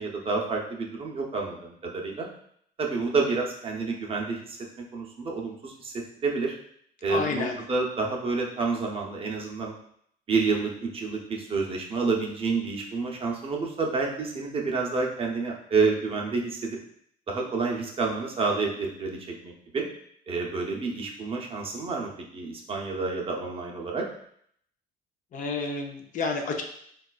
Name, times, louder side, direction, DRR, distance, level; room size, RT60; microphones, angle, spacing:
voice 1, 0.0-2.3 2.8-4.6 4.9-6.5 7.0-9.7 10.3-16.8 17.3-19.9 20.3-24.1, right 4 dB, 35° right, 0 dB, 0.6 m, -29 dB
voice 2, 7.1-7.6 25.3-26.6, left 4 dB, 50° left, 3 dB, 0.5 m, -30 dB
3.7 x 2.3 x 2.3 m, 0.66 s
cardioid pair, 110°, 17 cm